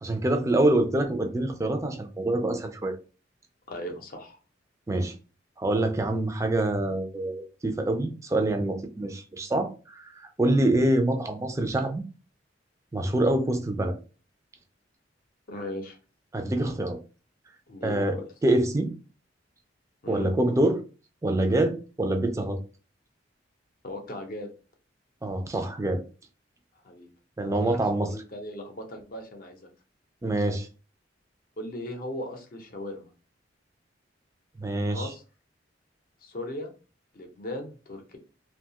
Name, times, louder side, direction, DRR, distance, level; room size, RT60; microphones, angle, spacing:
voice 1, 0.0-2.9 4.9-5.1 5.6-12.0 12.9-13.9 16.3-17.0 17.8-18.2 18.4-18.9 20.1-20.8 21.2-22.6 25.2-26.0 27.4-28.1 30.2-30.7 34.6-35.1, right 1 dB, 15° right, 0.3 m, -25 dB
voice 2, 3.7-4.4 15.5-16.0 17.7-18.2 20.0-20.3 23.8-24.5 26.8-27.1 27.4-29.7 31.6-33.1 34.9-35.2 36.2-36.7 37.1-38.2, left 1 dB, 50° left, 0.6 m, -38 dB
2.7 x 2.2 x 2.8 m
head